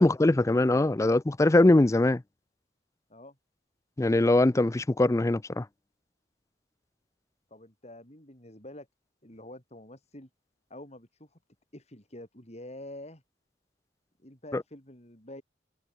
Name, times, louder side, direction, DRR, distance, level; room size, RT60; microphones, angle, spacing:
voice 1, 0.0-2.2 4.0-5.6 14.5-14.6, left 2 dB, 15° left, 0.4 m, -22 dB
voice 2, 7.5-8.9 9.2-10.3 10.7-11.4 11.7-13.2 14.2-15.4, left 1 dB, 40° left, 7.7 m, -47 dB
head